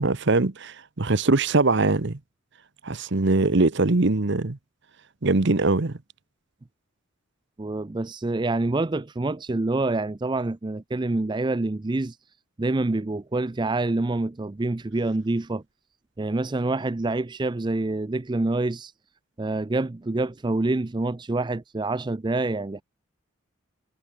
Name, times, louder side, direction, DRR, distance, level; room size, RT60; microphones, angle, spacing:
voice 1, 0.0-2.2 2.8-4.6 5.2-6.0, right 3 dB, 55° right, 1.0 m, -22 dB
voice 2, 7.6-12.2 12.6-15.6 16.2-18.9 19.4-22.8, right 2 dB, 20° right, 0.4 m, -26 dB
head